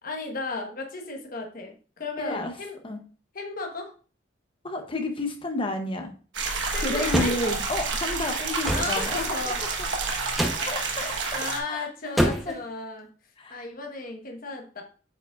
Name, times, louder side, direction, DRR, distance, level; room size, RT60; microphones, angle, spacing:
voice 1, 0.0-2.8 3.3-3.9 6.7-7.4 8.7-9.6 10.6-13.1 13.5-14.8, left 3 dB, 50° left, 3 dB, 1.1 m, -35 dB
voice 2, 2.2-2.5 2.8-3.0 4.6-6.1 6.8-9.5 10.6-11.4 11.7-11.9 12.5-12.6 13.4-13.6, left 2 dB, 30° left, 5 dB, 0.8 m, -31 dB
sound 1, 6.3-11.6, right 4 dB, 75° right, 1.2 m, -29 dB
sound 2, 7.1-7.4 8.6-8.9 10.3-10.7 12.2-12.6, equal, ahead, 0.8 m, -25 dB
8.2 x 5.0 x 2.4 m, 0.38 s
head